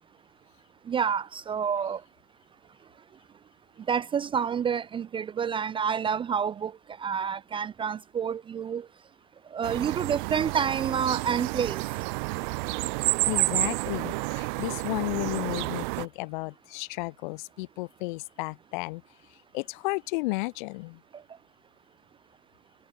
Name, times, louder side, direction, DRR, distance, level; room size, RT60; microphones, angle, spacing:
voice 1, 0.9-2.0 3.9-6.7 7.0-8.9 9.5-11.8, right 7 dB, 15° right, 0.7 m, -28 dB
sound 1, 9.6-16.1, right 28 dB, 45° right, 1.6 m, -30 dB
voice 2, 13.3-19.0 19.5-21.0, left 24 dB, 45° left, 1.5 m, -33 dB
figure-of-eight pair, 105°, 33 cm